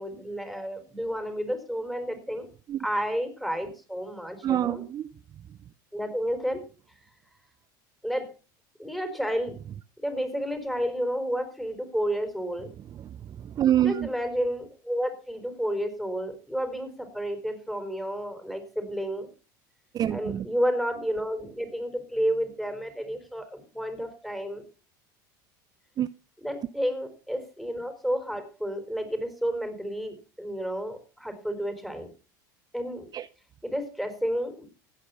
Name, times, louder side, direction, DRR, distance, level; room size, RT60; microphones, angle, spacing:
voice 1, 0.0-2.5 2.8-4.8 5.9-6.6 8.0-8.3 8.8-9.6 10.0-12.7 13.8-19.3 20.1-24.6 26.4-32.1 32.7-33.1 33.6-34.6, equal, ahead, 4.6 m, -31 dB
voice 2, 4.4-5.2 5.5-5.6 12.8-14.1 19.9-20.5 26.0-26.1 33.1-33.3, right 11 dB, 40° right, 0.6 m, -27 dB
16.0 x 8.9 x 5.8 m
hypercardioid pair, 90°, 10 cm